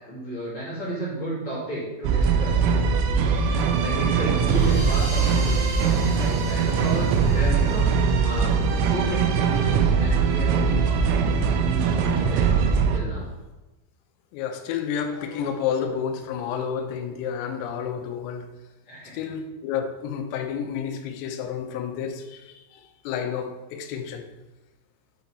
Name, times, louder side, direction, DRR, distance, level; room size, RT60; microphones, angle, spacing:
voice 1, 0.0-2.7 3.8-11.2 11.5-12.5 12.9-13.3 18.9-19.2, equal, 50° left, -10 dB, 1.6 m, -33 dB
sound 1, 2.0-13.0, right 6 dB, 85° right, 3.2 m, -21 dB
sound 2, 4.3-9.6, right 1 dB, 60° right, 1.0 m, -41 dB
voice 2, 14.3-18.5 19.1-24.2, left 7 dB, 85° left, 5 dB, 3.4 m, -30 dB
7.9 x 4.3 x 4.0 m, 1.1 s
omnidirectional pair, 5.9 m